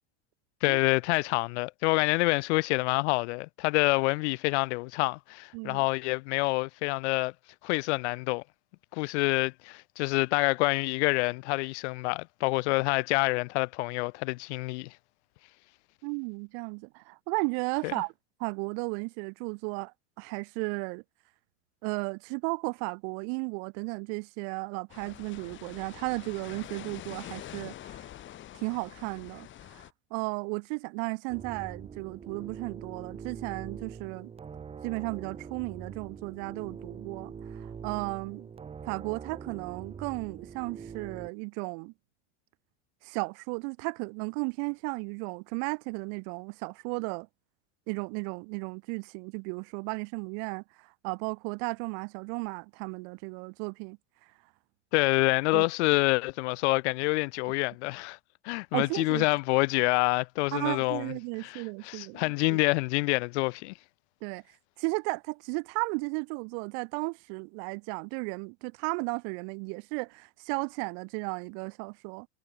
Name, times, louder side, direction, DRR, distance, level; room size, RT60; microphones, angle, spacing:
voice 1, 0.6-7.3 7.6-8.4 8.9-14.9 17.8-17.9 54.9-58.2 58.4-61.1 61.4-63.7, left 25 dB, 70° left, 2.0 m, -27 dB
voice 2, 5.5-5.9 16.0-18.1 18.4-21.0 21.8-28.1 28.5-29.8 30.1-34.3 34.8-38.5 38.9-41.9 43.0-47.3 47.9-54.0 55.5-55.6 58.7-59.3 60.5-62.6 64.2-64.4 64.8-72.3, right 40 dB or more, 60° right, 2.0 m, -34 dB
sound 1, 24.9-29.9, left 13 dB, 35° left, 2.1 m, -45 dB
sound 2, 31.3-41.3, right 6 dB, 15° right, 1.3 m, -43 dB
supercardioid pair, 145°, 35 cm